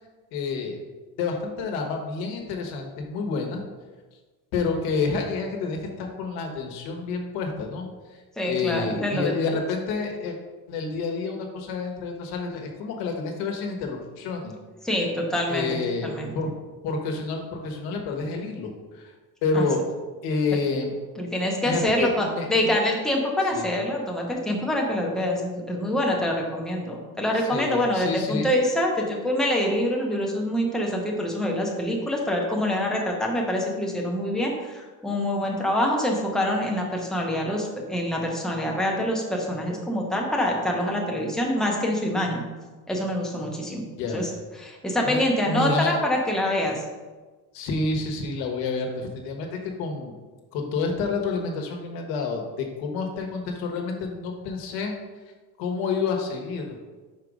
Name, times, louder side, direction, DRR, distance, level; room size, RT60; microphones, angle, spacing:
voice 1, 0.3-0.8 1.2-3.6 4.5-7.9 8.4-10.4 10.7-14.5 15.5-16.5 16.8-19.1 19.4-19.8 20.2-20.9 21.6-22.7 23.5-23.7 27.3-28.5 44.0-44.3 45.0-46.0 47.5-50.1 50.5-54.9 55.6-56.8, left 4 dB, 85° left, 2 dB, 1.1 m, -29 dB
voice 2, 8.4-9.3 14.8-15.7 16.0-16.3 19.5-19.6 21.2-42.5 42.9-43.8 44.1-44.3 44.6-46.8, left 1 dB, ahead, -1 dB, 0.6 m, -25 dB
4.8 x 4.6 x 5.1 m, 1.3 s
cardioid pair, 175°, 36 cm